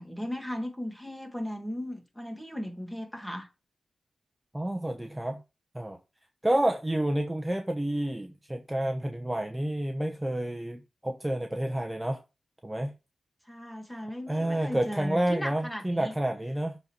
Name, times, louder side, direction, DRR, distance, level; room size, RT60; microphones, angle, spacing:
voice 1, 0.0-3.5 13.5-16.1, equal, 5° left, 2.1 m, -37 dB
voice 2, 4.5-5.4 5.7-6.0 6.4-12.2 12.6-12.9 14.3-16.8, right 1 dB, 10° right, 1.0 m, -29 dB
6.8 x 4.1 x 4.5 m
cardioid pair, 55°, 0 cm